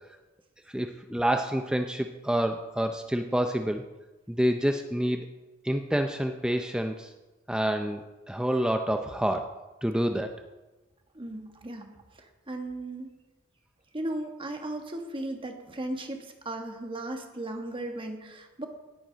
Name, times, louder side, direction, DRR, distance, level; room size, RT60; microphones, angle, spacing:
voice 1, 0.7-3.8 4.3-5.3 5.6-7.1 7.5-9.5 9.8-10.3, right 1 dB, 5° right, 5 dB, 0.5 m, -28 dB
voice 2, 11.1-13.1 13.9-18.7, right 1 dB, 25° right, 4 dB, 1.4 m, -36 dB
18.0 x 9.1 x 3.9 m, 1.1 s
head